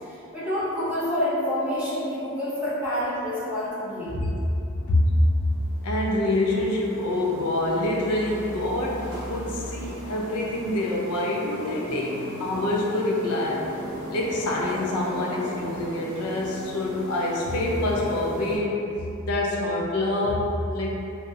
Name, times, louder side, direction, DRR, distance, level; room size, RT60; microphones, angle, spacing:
voice 1, 0.1-4.1, left 1 dB, 5° right, -12 dB, 0.6 m, -28 dB
sound 1, 4.1-10.0 11.9-18.0, left 1 dB, 25° left, 0.4 m, -41 dB
sound 2, 5.4-18.6, right 1 dB, 60° right, 0.5 m, -39 dB
voice 2, 5.8-13.6 14.1-18.8 19.2-20.9, left 1 dB, 85° left, -2 dB, 0.4 m, -26 dB
2.4 x 2.1 x 2.7 m, 2.7 s
head